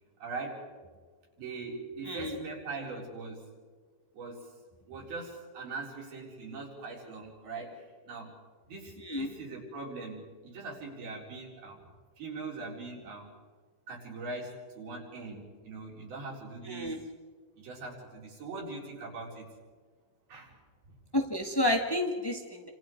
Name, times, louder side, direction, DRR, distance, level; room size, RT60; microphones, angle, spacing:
voice 1, 0.2-0.7 1.4-3.5 4.1-4.5 4.9-8.3 8.7-11.9 12.2-13.3 13.9-17.0 17.6-19.5 20.3-20.5 20.9-21.0, right 3 dB, 70° right, -2 dB, 6.5 m, -41 dB
voice 2, 16.7-17.0 21.1-22.7, left 1 dB, 15° left, 2 dB, 0.9 m, -30 dB
29.5 x 26.5 x 4.8 m, 1.5 s
omnidirectional pair, 4.4 m